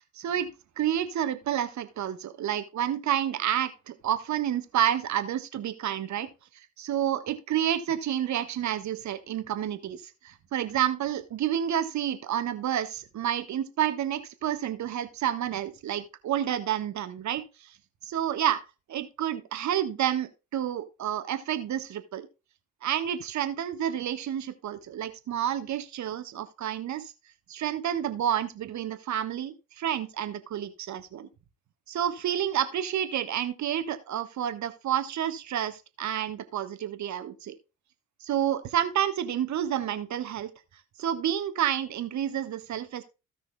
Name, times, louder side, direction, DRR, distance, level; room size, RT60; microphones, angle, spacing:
voice 1, 0.1-0.5 0.8-6.3 6.8-17.7 18.0-18.6 18.9-22.3 22.8-27.1 27.5-31.3 31.9-37.5 38.2-40.5 41.0-43.0, right 10 dB, 50° right, 10 dB, 1.4 m, -29 dB
16.5 x 6.2 x 2.3 m, 0.29 s
figure-of-eight pair, 50°, 35 cm